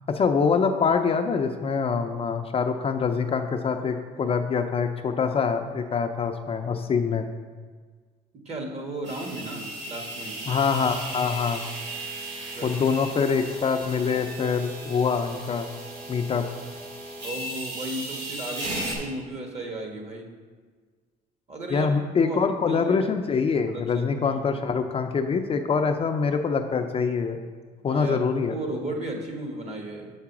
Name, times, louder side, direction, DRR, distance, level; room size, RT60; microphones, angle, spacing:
voice 1, 0.1-7.3 10.5-11.6 12.6-15.7 16.1-16.5 21.7-27.4 27.8-28.5, left 5 dB, 35° left, 5 dB, 0.5 m, -25 dB
voice 2, 8.4-10.3 12.5-12.8 17.2-20.3 21.5-22.4 22.7-23.0 23.7-24.4 27.9-30.1, right 2 dB, 40° right, 2 dB, 1.4 m, -35 dB
sound 1, 9.0-19.0, right 1 dB, 80° right, 2.1 m, -36 dB
6.5 x 4.8 x 5.9 m, 1.5 s
cardioid pair, 110°, 17 cm